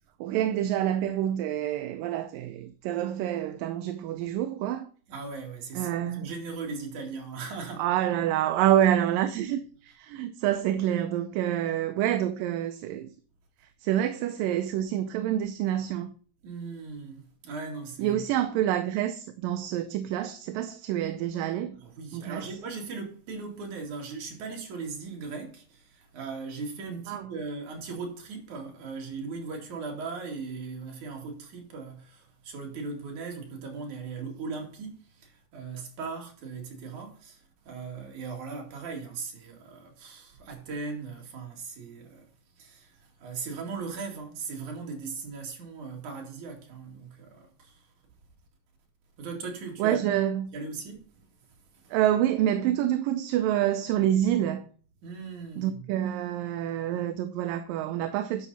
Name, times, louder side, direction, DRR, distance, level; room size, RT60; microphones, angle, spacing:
voice 1, 0.2-4.9 5.8-6.3 7.8-13.1 13.8-16.1 18.0-21.8 22.1-22.5 27.1-27.3 49.8-50.5 51.9-54.7 55.6-58.5, right 11 dB, 80° right, 2.4 m, -27 dB
voice 2, 5.1-7.8 16.4-18.2 21.8-42.3 42.6-47.9 49.2-50.1 50.5-51.3 51.7-51.9 55.0-55.9, right 4 dB, 60° right, 3.6 m, -38 dB
11.0 x 6.7 x 4.1 m
omnidirectional pair, 4.0 m